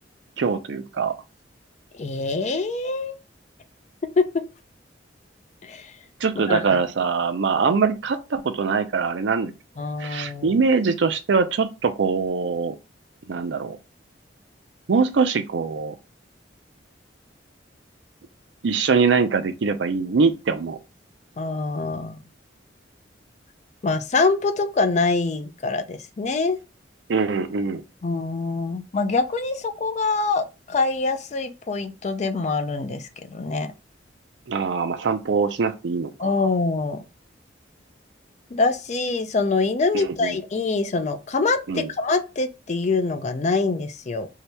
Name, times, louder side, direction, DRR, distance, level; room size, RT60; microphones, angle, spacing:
voice 1, 0.4-1.1 6.2-9.5 10.0-12.8 13.3-13.8 14.9-16.0 18.6-20.8 27.1-27.8 34.5-36.3 39.9-40.4 41.7-41.9, right 5 dB, 70° right, 0.5 m, -23 dB
voice 2, 1.9-3.2 4.2-4.4 5.6-5.9 6.4-6.6 9.8-10.7 21.4-22.2 23.8-26.6 28.0-33.7 36.2-37.0 38.5-44.3, left 3 dB, 40° left, 0.4 m, -24 dB
2.8 x 2.8 x 3.3 m
head